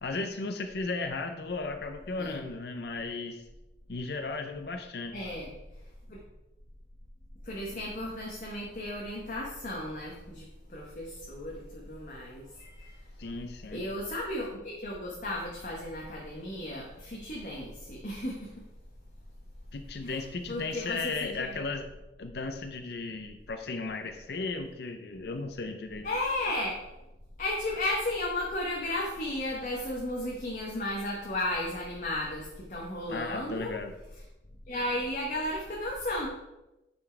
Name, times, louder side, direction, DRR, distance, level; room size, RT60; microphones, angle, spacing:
voice 1, 0.0-3.4 3.9-5.3 13.2-13.8 19.7-21.9 22.2-26.1 33.1-33.9, left 3 dB, 60° left, 7 dB, 0.6 m, -35 dB
voice 2, 5.1-5.5 6.1-6.2 7.4-12.9 13.7-18.5 20.0-20.2 20.5-21.5 26.0-26.8 27.4-33.7 34.7-36.3, left 1 dB, 45° left, -2 dB, 1.1 m, -34 dB
9.1 x 4.4 x 4.4 m, 0.99 s
head